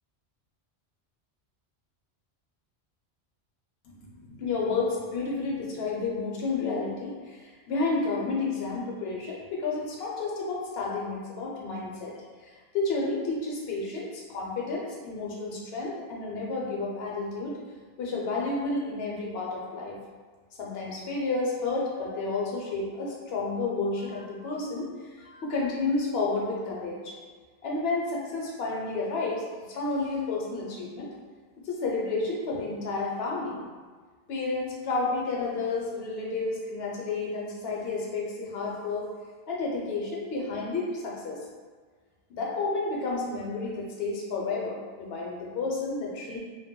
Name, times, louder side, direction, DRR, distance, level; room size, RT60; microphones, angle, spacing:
voice 1, 3.8-12.1 12.4-17.6 18.0-20.0 20.6-27.2 27.6-31.1 31.6-33.6 34.3-39.1 39.5-41.4 42.3-46.4, left 3 dB, 70° left, -2 dB, 0.8 m, -31 dB
2.2 x 2.1 x 3.5 m, 1.5 s
omnidirectional pair, 1.1 m